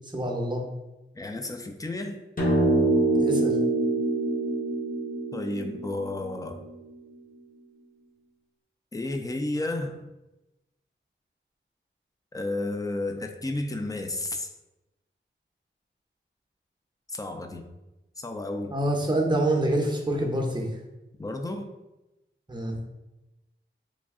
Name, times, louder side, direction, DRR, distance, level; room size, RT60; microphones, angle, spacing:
voice 1, 0.1-0.6 3.2-3.6 18.7-20.7 22.5-22.8, right 1 dB, 20° right, -1 dB, 0.7 m, -26 dB
voice 2, 1.1-2.2 5.3-6.7 8.9-10.0 12.3-14.5 17.1-17.6 18.2-18.8 21.2-21.7, left 2 dB, 15° left, 5 dB, 0.4 m, -32 dB
sound 1, 2.4-6.9, right 2 dB, 40° left, 0.8 m, -25 dB
3.1 x 2.5 x 3.5 m, 1.0 s
wide cardioid pair, 80°, 21 cm